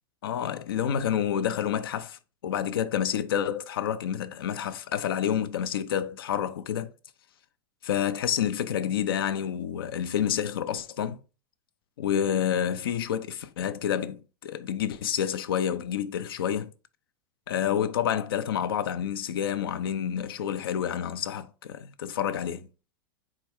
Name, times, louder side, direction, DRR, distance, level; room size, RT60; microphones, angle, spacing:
voice 1, 0.2-6.9 7.8-11.2 12.0-16.7 17.5-22.7, left 9 dB, 80° left, 0.5 m, -29 dB
4.3 x 2.4 x 4.3 m
hypercardioid pair, 105°, 12 cm